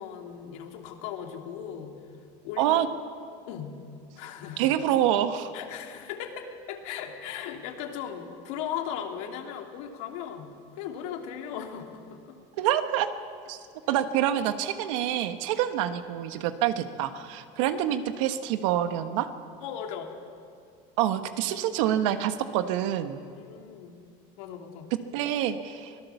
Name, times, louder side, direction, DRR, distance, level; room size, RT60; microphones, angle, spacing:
voice 1, 0.0-2.0 2.4-2.7 3.5-3.9 4.2-4.8 5.5-12.4 13.9-14.0 19.6-20.1 23.4-24.0 24.4-24.9, left 8 dB, 80° left, 3 dB, 2.7 m, -37 dB
voice 2, 2.6-2.9 4.6-5.5 12.6-13.1 13.5-13.6 13.9-19.3 21.0-23.2 25.1-25.9, right 11 dB, 85° right, 9 dB, 1.4 m, -26 dB
24.0 x 17.5 x 7.1 m, 2.3 s
cardioid pair, 150°, 16 cm